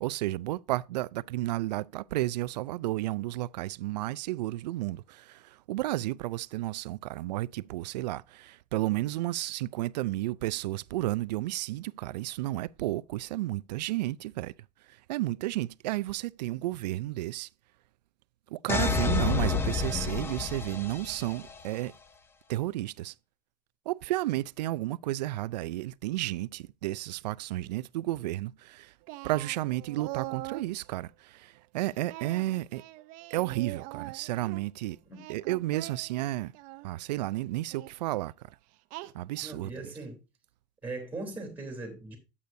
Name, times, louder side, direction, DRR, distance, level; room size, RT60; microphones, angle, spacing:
voice 1, 0.0-14.5 14.9-17.5 18.5-21.9 22.5-23.1 23.9-28.9 29.2-32.8 33.3-35.0 35.3-36.5 36.8-38.3 39.1-39.9, right 16 dB, 85° right, 0.4 m, -32 dB
sound 1, 18.7-21.6, left 5 dB, 10° left, 0.6 m, -29 dB
Singing, 29.1-30.7 32.1-34.6 35.1-36.9 37.7-37.9 38.9-39.5, right 19 dB, 40° right, 0.6 m, -42 dB
voice 2, 39.4-40.2 40.8-42.2, right 2 dB, 10° right, 3.3 m, -39 dB
10.5 x 8.4 x 2.7 m
supercardioid pair, 155°, 21 cm